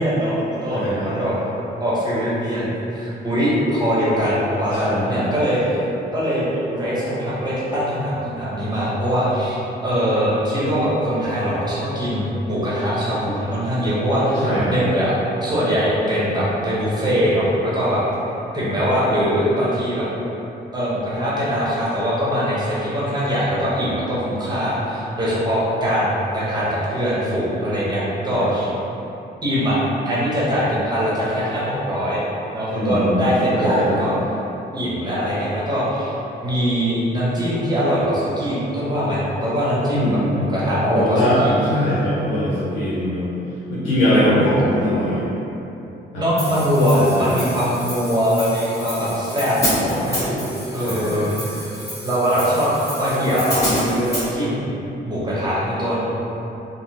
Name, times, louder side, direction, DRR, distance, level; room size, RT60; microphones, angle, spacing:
voice 1, 0.0-1.3 1.8-5.8 6.1-15.1 15.4-18.0 18.5-20.0 20.7-28.7 29.4-29.8 30.0-32.2 32.5-34.1 34.7-36.1 36.4-41.6 44.2-44.4 46.1-50.4 50.7-51.6 52.0-54.7 55.0-56.1, equal, 20° right, -9 dB, 1.0 m, -22 dB
voice 2, 0.7-1.1 4.8-5.3 14.4-14.8 28.3-28.5 32.7-33.2 33.5-34.0 39.9-40.2 40.8-41.4 41.7-43.3 43.7-45.2 46.1-46.2 46.9-47.3 49.7-50.3 50.8-51.4, left 1 dB, 85° left, -10 dB, 0.7 m, -22 dB
Hi-hat, 46.4-54.3, equal, 15° left, 1.2 m, -29 dB
3.4 x 2.1 x 2.9 m, 2.9 s
cardioid pair, 90°, 20 cm